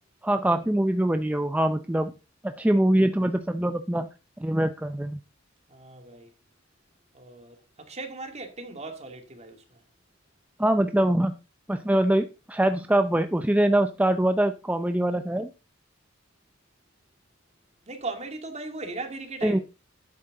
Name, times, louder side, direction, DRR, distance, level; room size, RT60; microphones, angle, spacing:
voice 1, 0.2-2.1 2.4-4.1 4.4-5.2 10.6-11.3 11.7-15.5 19.4-19.6, right 1 dB, 10° right, 0.5 m, -23 dB
voice 2, 5.7-6.3 7.1-9.8 17.9-19.6, right 3 dB, 35° right, 2.3 m, -38 dB
11.0 x 8.7 x 3.8 m
head